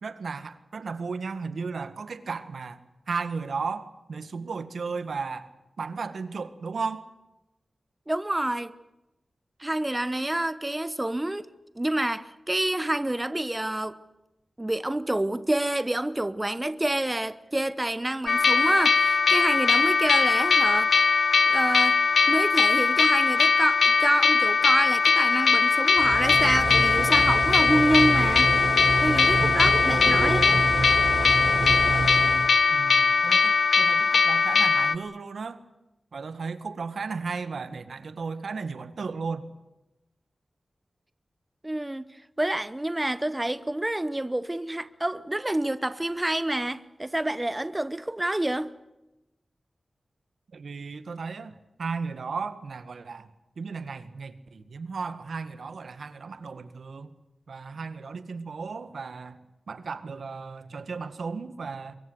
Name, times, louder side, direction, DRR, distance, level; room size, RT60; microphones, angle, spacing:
voice 1, 0.0-2.8 3.1-5.5 5.8-7.1 29.4-30.6 32.7-35.6 36.1-39.5 50.5-53.3 53.6-57.1 57.5-59.4 59.7-62.0, right 4 dB, 85° right, 1.8 m, -35 dB
voice 2, 8.1-8.7 9.6-11.5 11.8-14.0 14.6-21.0 21.5-22.0 22.3-28.5 29.0-30.5 41.6-42.1 42.4-48.7, right 1 dB, 15° right, 1.0 m, -27 dB
sound 1, 18.3-35.0, left 5 dB, 80° left, 0.9 m, -21 dB
sound 2, 26.0-32.5, right 3 dB, 65° right, 6.9 m, -28 dB
23.5 x 23.0 x 8.1 m
wide cardioid pair, 110°, 0 cm